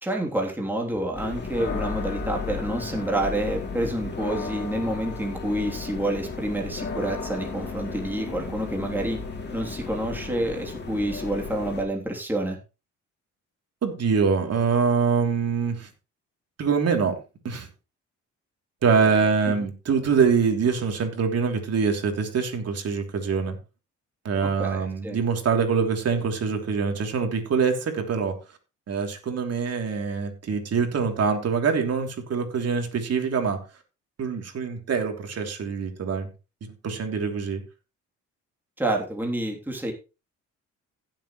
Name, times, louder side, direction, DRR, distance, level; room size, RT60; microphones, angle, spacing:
voice 1, 0.0-9.2 9.5-12.6 19.5-19.6 24.6-25.2 38.8-39.9, right 1 dB, 5° right, 0 dB, 3.2 m, -28 dB
sound 1, 1.1-11.8, left 4 dB, 35° left, 2.8 m, -34 dB
voice 2, 13.8-15.9 16.6-17.1 17.4-17.7 18.8-23.6 24.2-28.3 28.9-33.6 34.2-36.3 36.8-37.6, right 5 dB, 55° right, 4 dB, 3.2 m, -24 dB
16.0 x 7.6 x 3.2 m, 0.31 s
cardioid pair, 90°, 30 cm